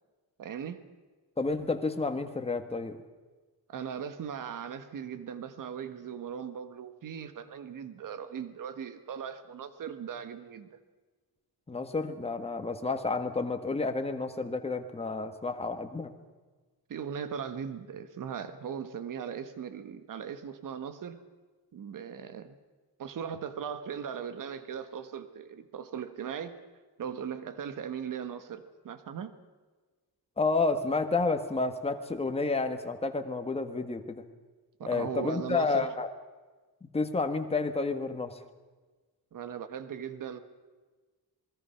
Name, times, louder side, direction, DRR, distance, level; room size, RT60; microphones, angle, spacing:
voice 1, 0.4-0.8 3.7-10.8 16.9-21.2 21.7-22.6 23.0-26.6 27.0-29.3 34.8-35.9 39.3-40.4, right 7 dB, 55° right, 11 dB, 1.6 m, -39 dB
voice 2, 1.4-3.0 11.7-16.1 30.4-34.2 34.9-36.1 36.9-38.4, left 3 dB, 15° left, 6 dB, 1.5 m, -30 dB
27.0 x 21.0 x 5.8 m, 1.3 s
wide cardioid pair, 175°, 39 cm